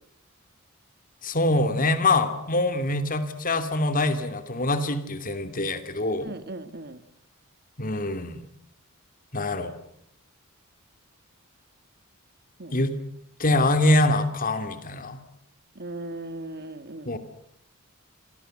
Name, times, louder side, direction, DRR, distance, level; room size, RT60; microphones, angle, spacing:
voice 1, 1.2-6.3 7.8-8.4 9.3-9.7 12.7-13.0 13.4-15.2 17.1-17.2, left 2 dB, 40° left, 10 dB, 2.8 m, -24 dB
voice 2, 6.2-7.0 12.6-12.8 15.8-17.2, right 2 dB, 50° right, 12 dB, 2.0 m, -38 dB
28.5 x 24.0 x 7.9 m, 0.72 s
head